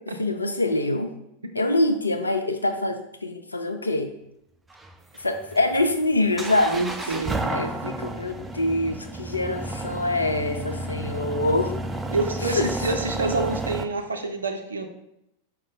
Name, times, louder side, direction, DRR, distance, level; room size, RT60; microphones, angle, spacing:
voice 1, 0.2-1.1 1.5-4.1 5.2-6.8 7.5-11.8 12.5-12.7, left 2 dB, 80° left, 5 dB, 0.4 m, -25 dB
sound 1, 4.7-13.8, right 2 dB, 10° right, 0.3 m, -32 dB
voice 2, 6.7-7.6 12.1-14.9, right 3 dB, 75° right, 5 dB, 0.5 m, -27 dB
4.9 x 2.1 x 4.0 m, 0.81 s
figure-of-eight pair, 90°, 0 cm